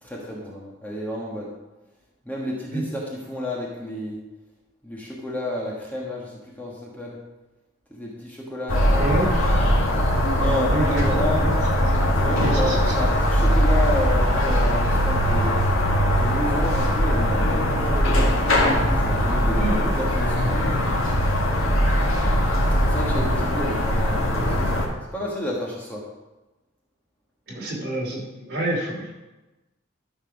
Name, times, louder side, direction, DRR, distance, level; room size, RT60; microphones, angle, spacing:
voice 1, 0.0-1.5 2.2-4.2 4.8-7.2 7.9-9.3 10.3-11.5 12.2-15.6 16.1-18.3 18.9-20.8 22.8-26.0, left 1 dB, 10° left, -4 dB, 1.4 m, -31 dB
sound 1, 8.7-24.9, equal, 85° left, 2.0 m, -21 dB
voice 2, 9.0-9.4 10.7-11.5 11.9-12.9 18.1-18.2 19.5-19.9 21.8-22.0 27.5-28.2 28.5-29.1, right 2 dB, 50° right, -3 dB, 3.1 m, -28 dB
13.0 x 4.7 x 5.9 m, 1.1 s
head